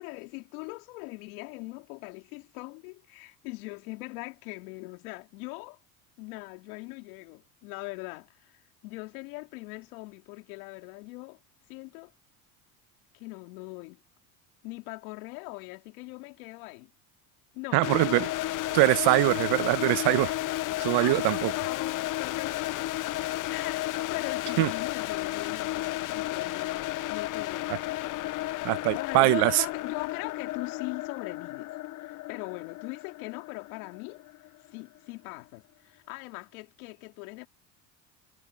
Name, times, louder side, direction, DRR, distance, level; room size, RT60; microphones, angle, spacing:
voice 1, 0.0-5.8 6.2-11.4 11.7-12.1 13.1-14.0 14.6-16.9 17.5-18.4 18.8-19.0 21.0-22.9 23.5-31.8 32.0-34.2 34.7-37.5, left 26 dB, 80° left, 3.5 m, -41 dB
voice 2, 17.7-18.3 18.7-20.3 20.8-21.5 24.6-24.7 28.6-29.6, right 21 dB, 65° right, 1.1 m, -23 dB
sound 1, 17.8-34.7, left 16 dB, 45° left, 0.7 m, -33 dB
supercardioid pair, 85°, 43 cm